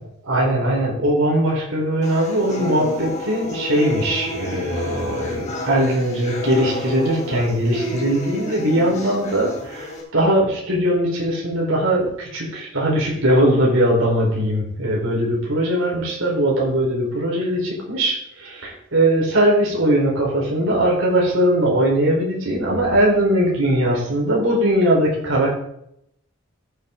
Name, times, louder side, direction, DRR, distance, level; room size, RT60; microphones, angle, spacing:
voice 1, 0.2-25.5, right 1 dB, 80° right, -3 dB, 4.5 m, -20 dB
sound 1, 2.0-10.0, left 1 dB, 35° left, 3.3 m, -31 dB
14.0 x 7.8 x 3.9 m, 0.75 s
head